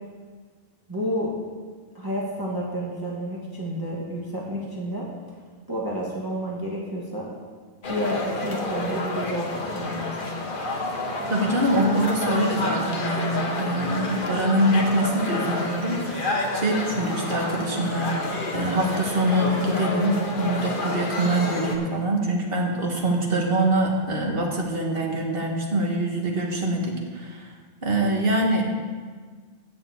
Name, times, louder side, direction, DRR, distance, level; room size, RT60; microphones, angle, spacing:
voice 1, 0.9-1.3 1.9-5.1 5.7-7.3 7.9-10.2, equal, 20° right, -5 dB, 1.6 m, -30 dB
sound 1, 7.8-21.8, left 2 dB, 50° left, 1.3 m, -29 dB
voice 2, 11.3-18.1 18.5-27.5 27.8-28.6, right 1 dB, 60° right, 0 dB, 1.7 m, -24 dB
7.4 x 7.0 x 8.1 m, 1.6 s
omnidirectional pair, 1.1 m